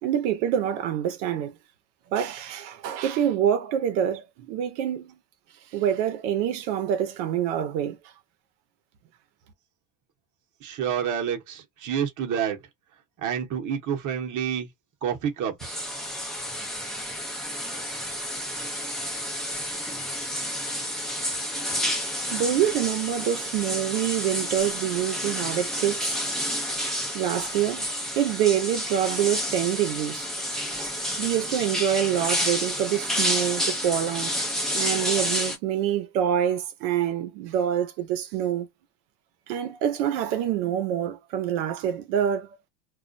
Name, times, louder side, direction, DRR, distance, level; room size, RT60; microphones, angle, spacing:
voice 1, 0.0-1.6 2.1-5.2 5.7-8.0 22.3-26.2 27.1-27.9 28.1-34.4 34.7-38.7 39.5-42.5, right 10 dB, 90° right, 0.7 m, -26 dB
voice 2, 10.6-12.6 13.2-14.7 15.0-15.8, right 8 dB, 35° right, 0.8 m, -28 dB
sound 1, 15.6-35.6, equal, ahead, 0.3 m, -30 dB
2.4 x 2.1 x 2.5 m
supercardioid pair, 115°, 50 cm